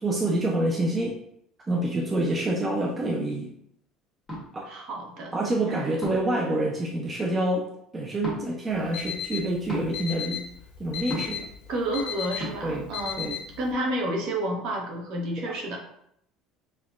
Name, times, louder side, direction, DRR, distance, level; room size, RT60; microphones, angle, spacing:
voice 1, 0.0-1.2 1.7-3.5 4.5-4.7 5.3-7.7 7.9-10.4 10.8-11.4 12.6-12.9 13.2-13.3 15.5-15.6, right 1 dB, 15° right, -2 dB, 0.3 m, -27 dB
sound 1, 4.3-4.5 6.0-6.3 8.2-8.4 9.7-9.9 11.1-11.4 12.4-12.5, equal, ahead, 1.2 m, -32 dB
voice 2, 4.7-5.3 5.7-5.8 11.7-15.8, right 1 dB, 50° right, 0 dB, 0.8 m, -30 dB
Alarm, 8.7-13.7, left 9 dB, 80° left, 0.5 m, -36 dB
5.2 x 2.1 x 2.3 m, 0.72 s
cardioid pair, 170°, 0 cm